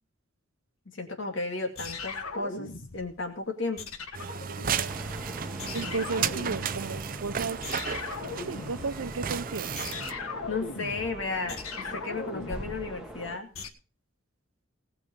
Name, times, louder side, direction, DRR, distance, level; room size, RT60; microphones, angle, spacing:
voice 1, 0.9-3.8 10.5-13.5, left 3 dB, 65° left, 2.3 m, -34 dB
sound 1, 1.8-3.3 3.8-5.3 5.6-7.2 7.6-13.7, left 4 dB, 90° left, 1.5 m, -39 dB
sound 2, 4.1-10.1, right 6 dB, 40° right, 0.6 m, -33 dB
sound 3, 4.8-13.4, equal, 5° right, 1.8 m, -44 dB
voice 2, 5.7-7.6 8.5-9.7, right 4 dB, 90° right, 0.7 m, -33 dB
19.0 x 6.6 x 5.1 m
head